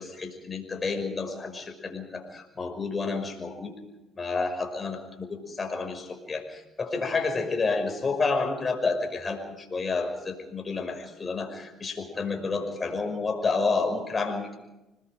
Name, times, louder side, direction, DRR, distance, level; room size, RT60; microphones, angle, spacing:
voice 1, 0.0-3.7 4.2-14.6, left 4 dB, 35° left, 4 dB, 5.7 m, -30 dB
27.0 x 20.5 x 5.2 m, 0.98 s
supercardioid pair, 75°, 0 cm